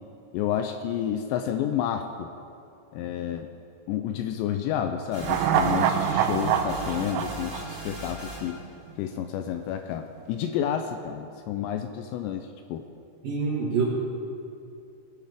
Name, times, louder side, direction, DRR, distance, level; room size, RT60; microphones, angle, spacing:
voice 1, 0.3-2.3 2.9-3.5 3.9-8.6 9.0-12.9, left 9 dB, 85° left, 7 dB, 2.6 m, -30 dB
sound 1, 5.1-8.6, left 1 dB, 5° right, 2.6 m, -39 dB
sound 2, 5.2-8.6 8.9-9.0, right 8 dB, 85° right, 3.0 m, -26 dB
voice 2, 13.2-13.8, right 5 dB, 55° right, -4 dB, 3.1 m, -25 dB
20.0 x 10.0 x 3.7 m, 2.6 s
omnidirectional pair, 5.4 m